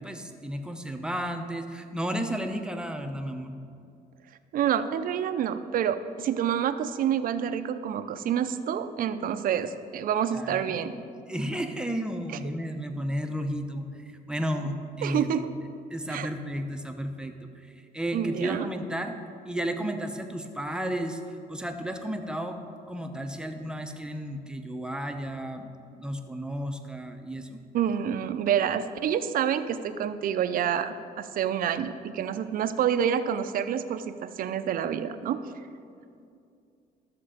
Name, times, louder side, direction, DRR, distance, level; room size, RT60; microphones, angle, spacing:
voice 1, 0.0-3.5 10.3-11.0 11.3-15.3 15.9-19.2 19.5-21.2 21.5-22.6 22.9-25.7 25.9-27.6, equal, 5° right, 5 dB, 0.8 m, -33 dB
voice 2, 4.5-10.9 15.0-15.5 16.1-16.3 18.1-18.7 27.7-35.4, right 9 dB, 55° right, 10 dB, 0.6 m, -28 dB
13.5 x 6.8 x 5.0 m, 2.4 s
cardioid pair, 110°, 17 cm